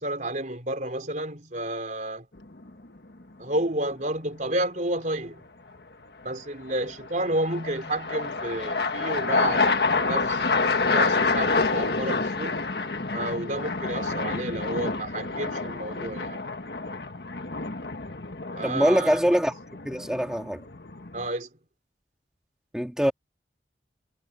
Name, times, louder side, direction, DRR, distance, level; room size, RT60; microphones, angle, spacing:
voice 1, 0.0-2.3 3.4-5.4 6.2-10.5 10.9-12.6 13.1-16.4 18.5-19.4 21.1-21.5, right 1 dB, 45° right, 3.9 m, -31 dB
sound 1, 2.4-2.9 6.7-21.3, left 3 dB, 65° left, 1.6 m, -28 dB
voice 2, 18.6-19.5 19.9-20.6 22.7-23.1, equal, 5° right, 1.9 m, -23 dB
head